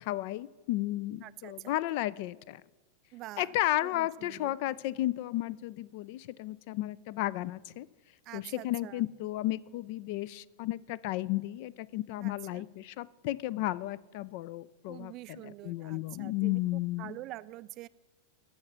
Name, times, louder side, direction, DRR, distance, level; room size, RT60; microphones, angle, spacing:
voice 1, 0.0-2.6 3.4-7.9 8.3-17.1, left 16 dB, 45° left, 22 dB, 0.3 m, -33 dB
voice 2, 1.2-1.7 3.1-3.5 3.8-4.6 8.3-9.0 12.2-12.6 14.9-17.9, right 17 dB, 35° right, 17 dB, 0.3 m, -46 dB
14.0 x 5.7 x 7.1 m, 1.2 s
figure-of-eight pair, 90°, 0 cm